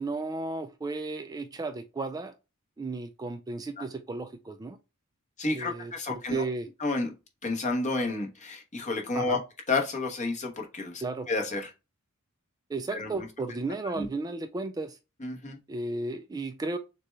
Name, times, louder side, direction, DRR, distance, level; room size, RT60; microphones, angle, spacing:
voice 1, 0.0-2.3 2.8-4.8 5.5-6.7 9.1-9.4 11.0-11.3 12.7-15.0 15.7-16.8, right 3 dB, 15° right, 0.3 m, -34 dB
voice 2, 5.4-6.4 6.8-7.1 7.4-9.4 9.7-11.0 11.3-11.7 12.9-13.2 14.0-14.1 15.2-15.6, left 3 dB, 35° left, 1.1 m, -30 dB
6.6 x 2.3 x 3.2 m
head